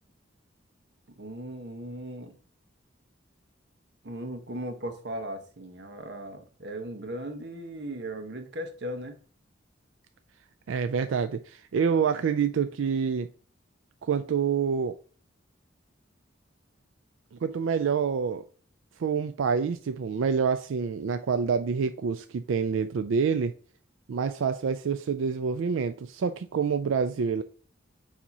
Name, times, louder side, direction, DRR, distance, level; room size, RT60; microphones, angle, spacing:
voice 1, 1.2-2.3 4.0-9.2, right 1 dB, 60° right, 1.1 m, -37 dB
voice 2, 10.7-13.3 14.0-15.0 17.3-18.4 19.0-23.5 24.1-27.4, right 6 dB, 90° right, 0.4 m, -27 dB
7.2 x 2.9 x 5.3 m
head